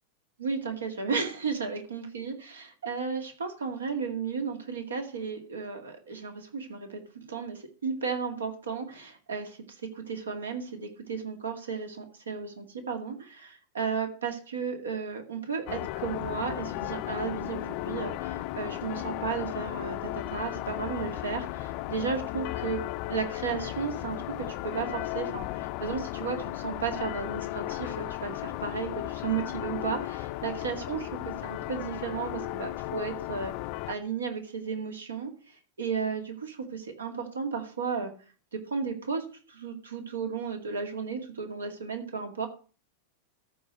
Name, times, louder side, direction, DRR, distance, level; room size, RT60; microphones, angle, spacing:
voice 1, 0.4-9.6 9.9-22.8 23.1-33.5 33.9-35.3 35.8-38.1 38.5-42.5, right 5 dB, 70° right, 5 dB, 2.1 m, -34 dB
sound 1, 15.7-33.9, left 16 dB, 45° left, 0.6 m, -35 dB
14.0 x 4.8 x 6.5 m, 0.38 s
figure-of-eight pair, 90°, 0 cm